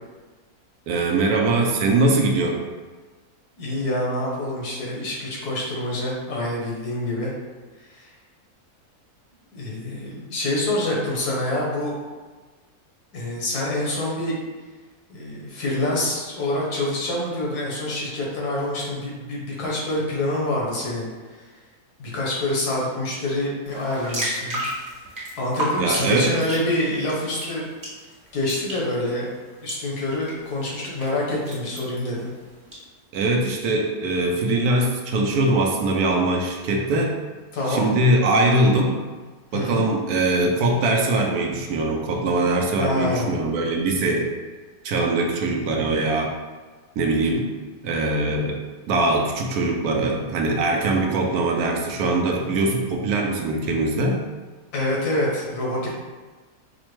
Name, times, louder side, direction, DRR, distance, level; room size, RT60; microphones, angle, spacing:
voice 1, 0.9-2.6 25.8-26.4 33.1-37.2 37.7-39.0 39.5-44.3 44.8-46.3 47.0-47.5 47.8-48.6 48.9-54.2, right 2 dB, 75° right, 1 dB, 1.1 m, -22 dB
voice 2, 3.6-7.3 7.8-8.1 9.5-11.9 13.1-14.4 15.1-21.1 22.0-24.6 25.4-27.7 28.3-29.3 29.6-32.3 37.5-37.9 39.5-39.8 42.8-43.4 54.7-56.0, left 1 dB, 80° left, -4 dB, 1.5 m, -26 dB
sound 1, 23.6-32.8, equal, 35° right, 1.3 m, -35 dB
4.9 x 2.1 x 3.0 m, 1.3 s
omnidirectional pair, 1.7 m